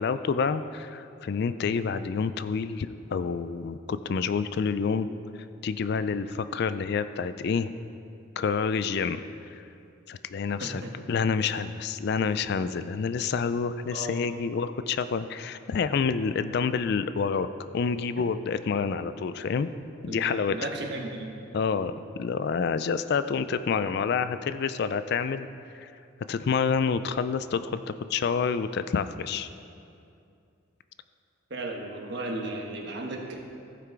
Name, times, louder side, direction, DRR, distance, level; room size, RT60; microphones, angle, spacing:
voice 1, 0.0-5.1 5.6-7.7 8.4-9.2 9.5-9.6 10.1-10.8 11.1-17.5 17.7-19.7 20.0-20.7 21.5-25.5 25.7-25.9 26.3-29.5, left 5 dB, 50° left, 12 dB, 0.3 m, -28 dB
voice 2, 10.6-10.9 13.9-14.1 20.1-21.3 31.5-33.4, right 2 dB, 55° right, 1 dB, 1.2 m, -35 dB
15.0 x 5.9 x 4.7 m, 2.5 s
head